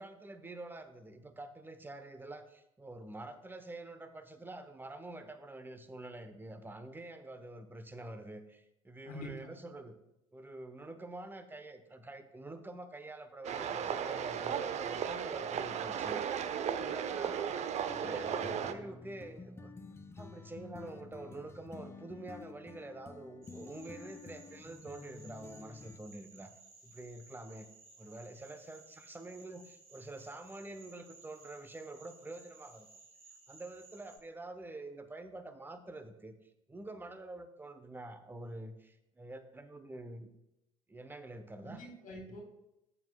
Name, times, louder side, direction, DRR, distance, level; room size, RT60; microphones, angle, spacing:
voice 1, 0.0-10.0 10.3-16.5 16.8-17.6 18.0-19.7 20.2-26.5 26.8-27.7 28.0-32.9 33.5-36.3 36.7-40.3 40.9-41.8 42.3-42.4, right 2 dB, 10° right, 10 dB, 1.0 m, -47 dB
voice 2, 9.0-9.6 41.6-42.4, equal, 50° left, 2 dB, 1.9 m, -45 dB
sound 1, 13.4-18.7, right 8 dB, 40° right, 0.7 m, -35 dB
sound 2, 17.9-26.0, left 4 dB, 15° left, 0.7 m, -50 dB
sound 3, 23.4-34.2, right 3 dB, 85° right, 2.3 m, -58 dB
13.5 x 7.7 x 2.3 m, 0.87 s
figure-of-eight pair, 60°, 17 cm